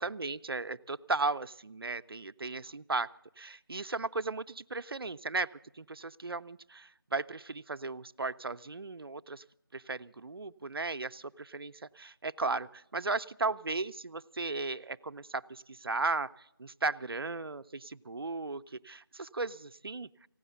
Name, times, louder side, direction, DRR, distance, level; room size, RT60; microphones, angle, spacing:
voice 1, 0.0-3.1 3.4-5.5 5.8-9.4 9.7-20.1, right 3 dB, 90° right, 11 dB, 0.5 m, -36 dB
16.0 x 10.0 x 6.7 m, 0.84 s
figure-of-eight pair, 180°, 12 cm